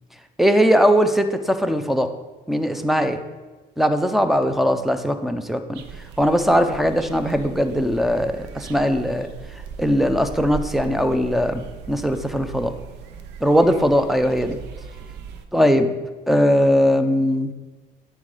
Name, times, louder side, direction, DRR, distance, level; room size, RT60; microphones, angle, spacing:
voice 1, 0.4-2.1 2.5-3.2 3.8-5.8 6.2-9.3 9.8-12.7 13.4-14.6 15.5-16.0 16.3-17.5, equal, ahead, 9 dB, 0.5 m, -19 dB
sound 1, 5.7-15.5, right 6 dB, 90° right, 0.6 m, -38 dB
9.4 x 4.5 x 4.9 m, 1.3 s
cardioid pair, 110°, 17 cm